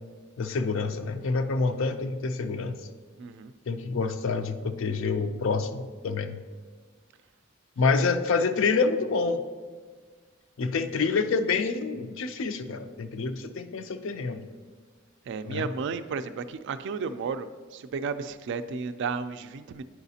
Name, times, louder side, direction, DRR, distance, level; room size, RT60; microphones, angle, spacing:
voice 1, 0.4-2.8 3.7-6.4 7.8-9.4 10.6-14.4 15.4-15.7, left 4 dB, 65° left, 9 dB, 0.4 m, -27 dB
voice 2, 3.2-3.5 15.3-19.8, right 5 dB, 60° right, 12 dB, 0.3 m, -33 dB
9.7 x 4.9 x 2.7 m, 1.5 s
head